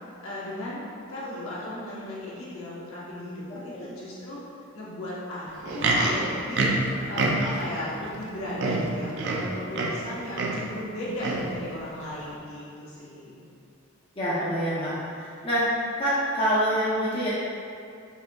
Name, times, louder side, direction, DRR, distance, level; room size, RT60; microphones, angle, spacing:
voice 1, 0.2-4.4 4.7-6.7 7.1-13.4, left 1 dB, 70° left, -7 dB, 1.0 m, -36 dB
Livestock farm animals working animals, 5.5-7.7 8.3-8.4 8.6-10.1 10.3-10.7 11.2-11.5 12.2-12.3, right 2 dB, 50° right, 0.4 m, -26 dB
voice 2, 14.2-15.7 16.0-17.3, equal, 25° left, -10 dB, 0.6 m, -26 dB
5.4 x 2.7 x 2.2 m, 2.5 s
head